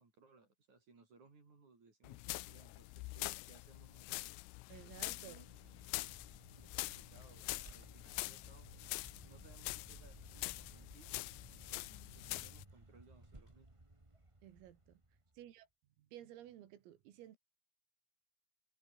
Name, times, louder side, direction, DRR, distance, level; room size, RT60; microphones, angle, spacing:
voice 1, 0.0-4.3 5.2-5.5 6.6-8.7 9.2-13.8 15.4-15.5, right 4 dB, 35° right, 6.9 m, -64 dB
sound 1, 2.0-12.7, left 26 dB, 90° left, 3.3 m, -45 dB
voice 2, 4.7-5.4 14.4-15.0 15.4-15.7 16.0-17.4, right 12 dB, 90° right, 4.9 m, -55 dB
Vehicle, 5.1-15.4, right 2 dB, 55° right, 0.3 m, -59 dB
omnidirectional pair, 5.9 m